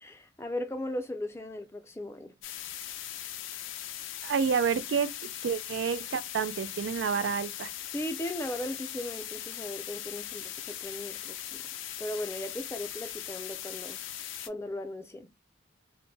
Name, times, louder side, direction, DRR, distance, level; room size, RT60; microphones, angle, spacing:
voice 1, 0.0-2.3 7.9-11.5 12.0-14.0 14.5-15.3, left 1 dB, 15° left, 0.4 m, -37 dB
sound 1, 2.4-14.5, left 11 dB, 85° left, 0.4 m, -40 dB
voice 2, 4.2-7.7, right 6 dB, 65° right, 0.3 m, -29 dB
2.5 x 2.1 x 3.2 m
head